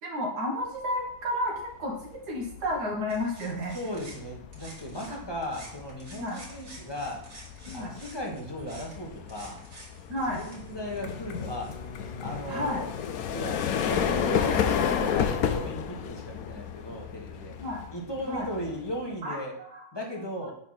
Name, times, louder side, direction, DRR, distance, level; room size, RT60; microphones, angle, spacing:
voice 1, 0.0-3.8 5.1-5.2 6.1-6.4 7.7-8.0 10.1-10.4 12.5-12.8 16.3-16.5 17.6-17.9 18.3-18.5 19.2-19.4 19.7-19.8, left 1 dB, 70° right, -1 dB, 2.0 m, -32 dB
sound 1, 1.7-2.0 2.4-19.1, left 8 dB, 65° left, 1.1 m, -32 dB
sound 2, 3.1-5.2 5.4-11.7, right 2 dB, 55° right, 2.2 m, -50 dB
voice 2, 3.7-7.2 7.7-9.6 10.3-11.8 12.2-12.9 13.3-17.6 17.9-19.6 19.9-20.5, equal, 15° left, -1 dB, 1.3 m, -37 dB
Bowed string instrument, 10.5-14.1, left 2 dB, 45° left, 0.6 m, -46 dB
9.6 x 4.2 x 4.1 m, 0.67 s
omnidirectional pair, 1.8 m